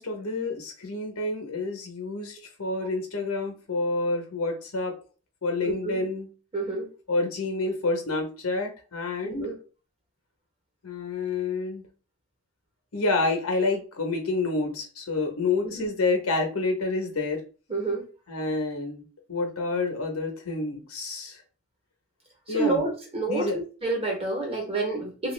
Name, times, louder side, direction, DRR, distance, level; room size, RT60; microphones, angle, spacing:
voice 1, 0.0-4.9 5.4-6.3 7.1-9.5 10.8-11.8 12.9-17.4 18.3-19.0 19.3-21.4 22.5-22.8 23.3-23.6, left 3 dB, 90° left, 3 dB, 0.9 m, -28 dB
voice 2, 5.7-6.0 6.5-6.9 9.2-9.5 15.6-15.9 17.7-18.0 22.5-23.5 23.8-25.3, right 3 dB, 25° right, 0 dB, 1.0 m, -28 dB
2.9 x 2.4 x 3.2 m, 0.36 s
head